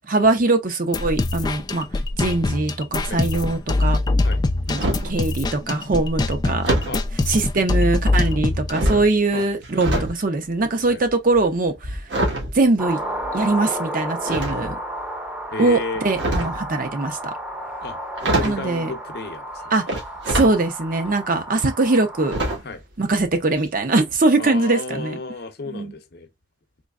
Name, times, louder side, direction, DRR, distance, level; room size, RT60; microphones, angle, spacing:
voice 1, 0.1-1.9 2.2-4.0 4.7-6.7 7.3-12.0 12.5-13.0 13.3-14.8 15.6-17.3 18.4-18.9 19.7-19.8 20.3-22.4 23.0-25.2 25.7-25.9, right 2 dB, 50° right, 0.7 m, -21 dB
sound 1, 0.9-8.7, left 2 dB, 20° left, 0.4 m, -23 dB
sound 2, 4.4-5.2 6.6-7.0 7.9-8.3 8.7-10.2 10.5-13.5 14.2-15.0 15.9-16.7 17.8-17.9 18.2-18.7 19.9-20.5 21.0-21.1 22.3-22.8 23.1-23.3 23.6-23.7, right 1 dB, 75° right, 1.5 m, -25 dB
sound 3, 12.8-22.6, right 1 dB, 5° right, 0.7 m, -32 dB
voice 2, 15.5-16.4 17.8-19.7 22.6-22.8 24.4-26.3, left 3 dB, 60° left, 0.7 m, -33 dB
3.9 x 3.1 x 2.4 m
head